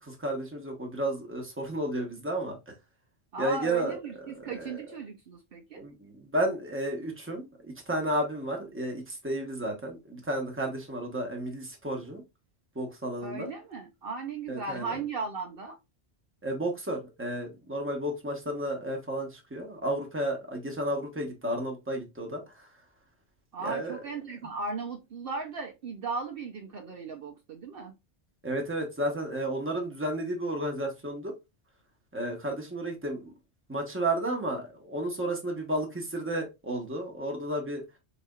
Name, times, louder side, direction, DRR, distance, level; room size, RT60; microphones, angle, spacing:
voice 1, 0.0-2.7 3.4-4.0 4.5-4.8 5.8-7.5 7.9-12.2 12.7-13.5 14.5-14.9 16.4-22.7 23.6-24.0 28.4-31.3 32.1-33.3 33.7-37.8, right 1 dB, 10° right, 1.0 m, -32 dB
voice 2, 3.3-5.8 13.2-15.8 23.5-27.9, right 4 dB, 60° right, 0.7 m, -37 dB
4.2 x 4.1 x 2.3 m
omnidirectional pair, 1.2 m